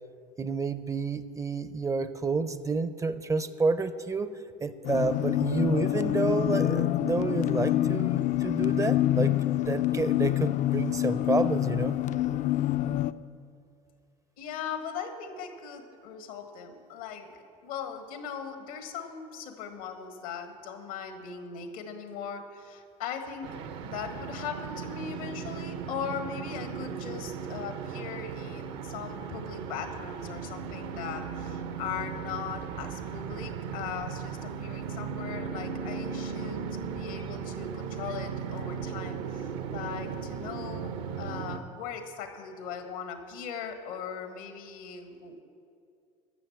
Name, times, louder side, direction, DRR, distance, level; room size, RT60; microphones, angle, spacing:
voice 1, 0.4-9.3 9.7-11.9, right 4 dB, 20° right, 13 dB, 0.5 m, -29 dB
sound 1, 4.8-13.1, left 13 dB, 45° left, 0.4 m, -26 dB
voice 2, 14.4-17.4 17.6-23.5 23.8-45.4, left 7 dB, 85° left, 6 dB, 1.5 m, -39 dB
sound 2, 23.4-41.6, right 6 dB, 70° right, 0.8 m, -37 dB
12.0 x 7.2 x 7.2 m, 2.4 s
supercardioid pair, 100°, 18 cm